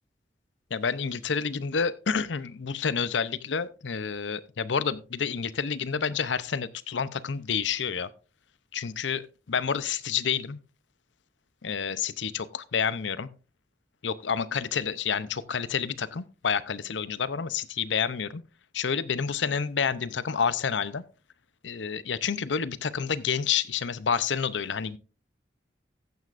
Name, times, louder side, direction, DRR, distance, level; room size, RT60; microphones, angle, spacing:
voice 1, 0.7-8.1 8.7-10.6 11.6-13.3 14.0-18.4 18.7-21.0 21.6-25.0, left 6 dB, 85° left, 0.7 m, -29 dB
14.0 x 9.4 x 2.5 m
head